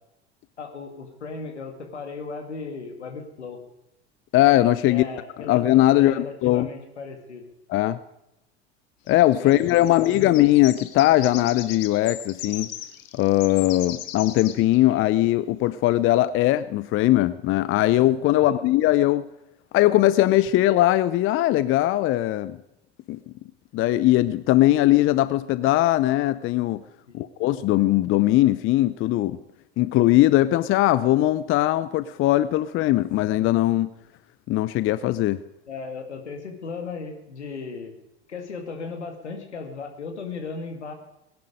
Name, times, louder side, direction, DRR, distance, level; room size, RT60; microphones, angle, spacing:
voice 1, 0.6-3.6 4.9-5.6 5.9-7.5 9.4-10.1 18.3-18.6 27.1-27.3 35.7-38.0 38.3-40.9, left 4 dB, 85° left, 5 dB, 2.3 m, -36 dB
voice 2, 4.3-5.0 5.5-6.7 7.7-8.0 9.1-12.7 13.1-19.2 19.7-22.6 23.1-23.2 23.7-26.8 27.1-29.4 29.8-33.9 34.5-35.4, left 15 dB, 40° left, 15 dB, 0.6 m, -20 dB
sound 1, 9.1-15.0, left 12 dB, 60° left, 1.5 m, -38 dB
18.5 x 10.5 x 5.0 m, 0.88 s
figure-of-eight pair, 75°, 33 cm